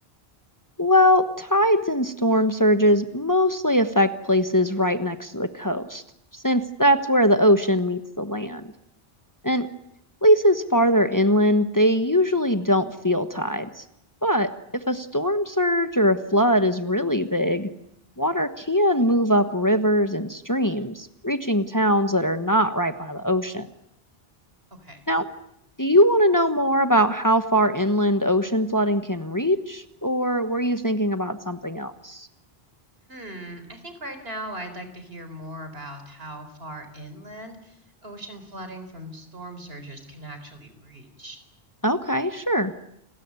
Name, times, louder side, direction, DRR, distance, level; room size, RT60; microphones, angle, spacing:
voice 1, 0.8-6.0 6.3-8.7 9.4-9.7 10.2-13.8 14.2-17.7 18.2-23.7 25.1-25.3 25.8-32.3 41.8-42.7, equal, 20° left, 9 dB, 1.2 m, -21 dB
voice 2, 33.1-41.4, right 1 dB, 70° right, 8 dB, 4.4 m, -39 dB
29.5 x 20.5 x 9.6 m, 0.77 s
omnidirectional pair, 1.0 m